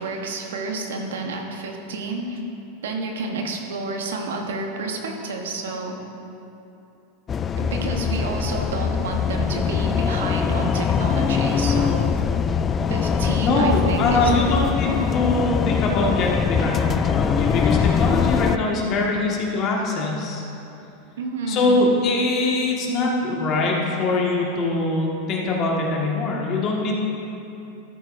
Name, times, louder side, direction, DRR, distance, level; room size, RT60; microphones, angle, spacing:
voice 1, 0.0-2.4 2.8-6.0 7.6-12.1 12.9-14.3 21.2-21.8, right 3 dB, 80° right, 2 dB, 1.2 m, -30 dB
sound 1, 7.3-18.6, left 6 dB, 30° left, 0.3 m, -22 dB
voice 2, 13.4-20.4 21.5-27.0, left 2 dB, 45° left, -2 dB, 1.8 m, -23 dB
13.5 x 9.0 x 2.7 m, 2.8 s
hypercardioid pair, 100°, 0 cm